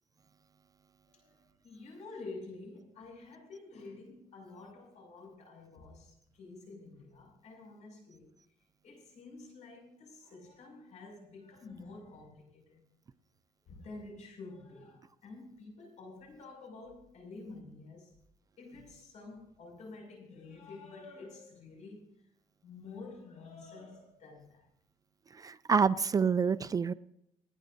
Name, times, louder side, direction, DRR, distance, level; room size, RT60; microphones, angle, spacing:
voice 1, 1.1-8.3 8.8-12.8 13.7-18.1 18.6-22.0 22.6-24.7, left 3 dB, 65° left, 1 dB, 6.1 m, -49 dB
voice 2, 25.4-26.9, right 6 dB, 30° right, 14 dB, 0.4 m, -27 dB
28.5 x 10.0 x 2.6 m, 0.79 s
cardioid pair, 140°, 13 cm